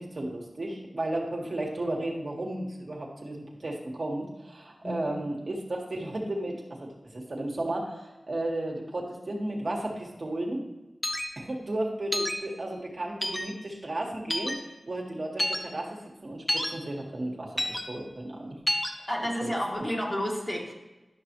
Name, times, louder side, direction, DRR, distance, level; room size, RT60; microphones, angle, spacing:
voice 1, 0.0-10.6 11.4-18.6 18.9-19.1 19.4-19.5, right 1 dB, 60° right, -2 dB, 1.8 m, -34 dB
voice 2, 4.8-5.2 19.1-20.7, equal, 30° left, -3 dB, 2.1 m, -31 dB
sound 1, 11.0-11.3 12.1-12.4 13.2-13.4 14.3-14.5 15.4-15.6 16.5-16.7 17.6-17.8 18.7-18.9, left 1 dB, 15° left, 0.9 m, -28 dB
11.5 x 6.0 x 3.1 m, 1.1 s
cardioid pair, 45°, 0 cm